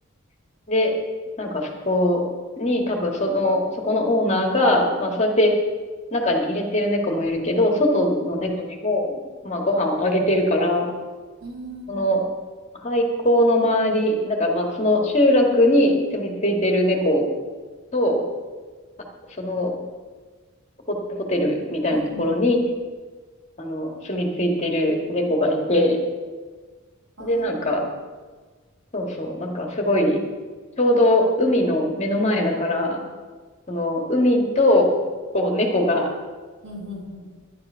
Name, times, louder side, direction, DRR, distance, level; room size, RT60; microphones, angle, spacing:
voice 1, 1.4-2.2 2.6-5.5 6.1-9.1 9.4-10.9 11.9-12.2 12.8-17.2 17.9-18.2 19.4-19.7 20.9-21.0 21.3-22.6 23.6-26.0 27.2-27.8 28.9-30.2 30.8-33.0 33.7-34.9 35.3-36.1, left 1 dB, 35° left, 1 dB, 1.9 m, -21 dB
voice 2, 11.4-12.1 21.9-22.4 27.2-27.8 36.6-37.3, equal, 85° right, -4 dB, 3.9 m, -38 dB
11.5 x 11.0 x 5.6 m, 1.4 s
head